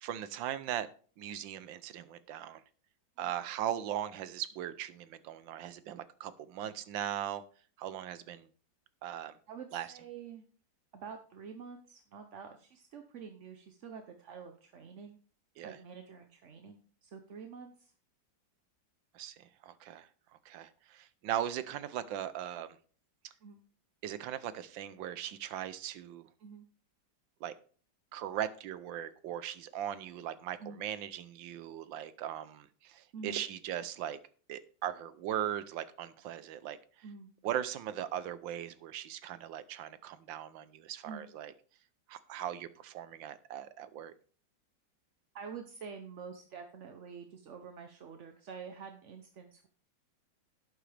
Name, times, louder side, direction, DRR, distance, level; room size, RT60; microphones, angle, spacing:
voice 1, 0.0-0.9 1.2-2.6 3.2-7.4 7.8-8.5 9.0-9.4 9.7-9.9 15.6-15.8 19.1-20.1 20.4-22.8 24.0-26.3 27.4-27.5 28.1-34.2 34.5-36.8 37.4-41.5 42.1-44.1, right 11 dB, 90° right, 14 dB, 1.5 m, -39 dB
voice 2, 9.5-10.4 10.9-15.2 15.6-17.9 23.4-23.6 26.4-26.7 30.6-30.8 33.1-33.4 37.0-37.3 41.0-41.3 45.3-49.7, right 6 dB, 55° right, 6 dB, 0.9 m, -47 dB
11.5 x 8.9 x 3.4 m, 0.42 s
omnidirectional pair, 2.0 m